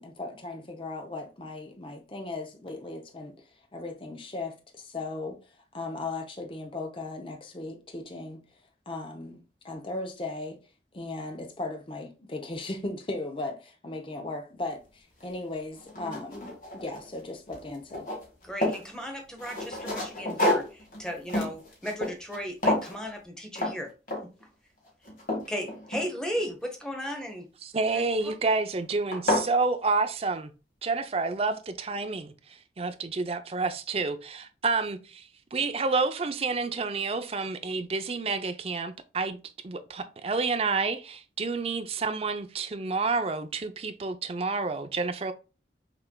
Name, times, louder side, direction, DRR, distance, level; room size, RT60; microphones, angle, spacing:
voice 1, 0.0-5.4 5.7-8.4 8.9-10.6 10.9-18.1, left 2 dB, 30° left, 0.7 m, -37 dB
sound 1, 15.2-15.3 15.8-17.2 17.5-18.9 19.4-22.4 22.6-23.0 23.5-23.8 24.1-24.4 24.9-26.4 27.9-28.3 28.8-28.9 29.1-29.5, left 1 dB, 50° left, 1.8 m, -30 dB
voice 2, 18.4-23.9 24.2-24.3 25.5-27.5 27.9-28.0, equal, 5° left, 0.9 m, -35 dB
voice 3, 27.6-30.5 30.8-39.4 39.6-45.3, right 4 dB, 35° right, 0.5 m, -29 dB
5.9 x 3.3 x 2.2 m
head